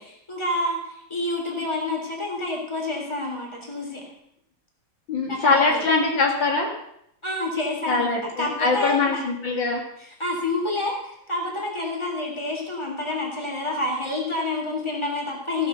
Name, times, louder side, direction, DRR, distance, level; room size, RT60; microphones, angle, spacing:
voice 1, 0.0-4.0 5.3-5.8 7.2-9.2 10.0-15.7, left 2 dB, 15° left, 0 dB, 3.2 m, -28 dB
voice 2, 5.1-6.7 7.9-9.8, left 3 dB, 65° left, 1 dB, 2.7 m, -22 dB
15.0 x 8.5 x 6.8 m, 0.74 s
omnidirectional pair, 2.2 m